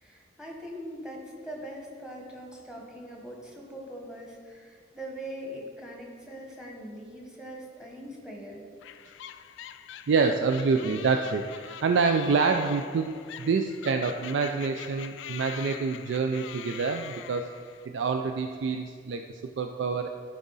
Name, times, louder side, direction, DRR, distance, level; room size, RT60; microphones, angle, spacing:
voice 1, 0.0-8.6, equal, 5° right, -1 dB, 1.1 m, -42 dB
sound 1, 8.8-17.9, left 10 dB, 75° left, 0.3 m, -44 dB
voice 2, 10.1-13.1 13.4-17.5 17.9-19.2 19.6-20.1, right 4 dB, 70° right, 5 dB, 0.4 m, -26 dB
12.0 x 4.8 x 4.0 m, 2.1 s
head